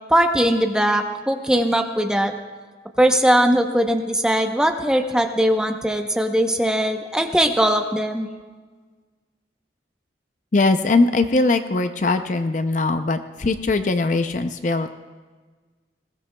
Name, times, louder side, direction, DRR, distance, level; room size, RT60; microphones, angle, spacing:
voice 1, 0.1-2.3 3.0-8.3, equal, 5° right, 4 dB, 0.7 m, -20 dB
voice 2, 10.5-14.9, left 3 dB, 45° left, 9 dB, 0.4 m, -20 dB
20.5 x 16.5 x 2.2 m, 1.4 s
head